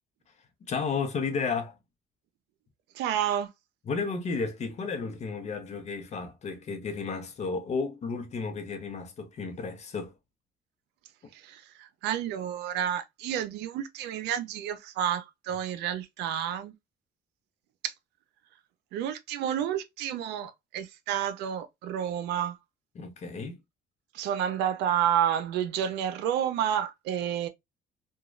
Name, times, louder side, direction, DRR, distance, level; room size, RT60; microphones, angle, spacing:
voice 1, 0.7-1.8 3.9-10.1 11.2-11.3 22.9-23.6, left 4 dB, 40° left, 0.7 m, -33 dB
voice 2, 2.9-3.5 11.3-16.7 17.8-17.9 18.9-22.6 24.1-27.5, right 10 dB, 85° right, 0.5 m, -30 dB
2.9 x 2.2 x 2.4 m
cardioid pair, 110°, 17 cm